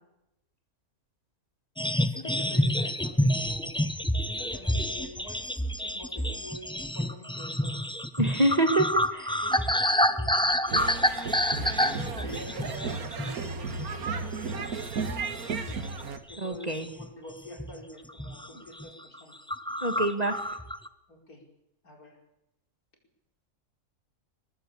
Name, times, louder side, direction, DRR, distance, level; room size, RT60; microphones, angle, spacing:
voice 1, 1.8-3.8 4.2-7.8 9.4-10.6 11.5-14.5 16.3-19.4 21.1-21.4 21.8-22.2, left 1 dB, 75° left, 2 dB, 5.5 m, -46 dB
sound 1, 1.8-13.5 13.8-14.1 14.5-16.0 16.3-17.1 17.6-17.8 18.1-18.5 18.8-18.9 19.1-19.2 19.5-20.9, equal, 5° left, 0.7 m, -28 dB
voice 2, 8.2-9.4 16.4-16.9 19.8-20.4, right 1 dB, 25° right, 7 dB, 1.8 m, -26 dB
sound 2, 10.7-16.2, right 4 dB, 75° right, 2.0 m, -34 dB
22.5 x 19.5 x 8.5 m, 0.87 s
omnidirectional pair, 1.6 m